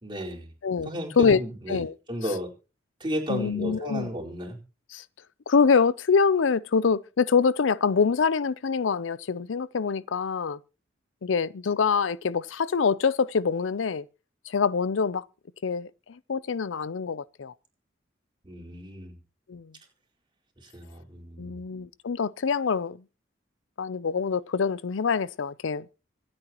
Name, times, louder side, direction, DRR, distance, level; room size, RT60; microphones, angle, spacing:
voice 1, 0.0-0.5 0.8-2.5 3.0-4.6 18.4-19.1 20.6-21.6, equal, 25° right, 4.5 m, -34 dB
voice 2, 0.6-1.4 1.7-1.9 3.3-4.1 4.9-5.0 5.5-10.6 11.2-14.0 14.5-15.2 15.6-15.9 16.3-17.5 19.5-19.7 21.4-23.0 23.8-25.8, left 5 dB, 90° left, 0.5 m, -25 dB
25.5 x 8.7 x 3.0 m
head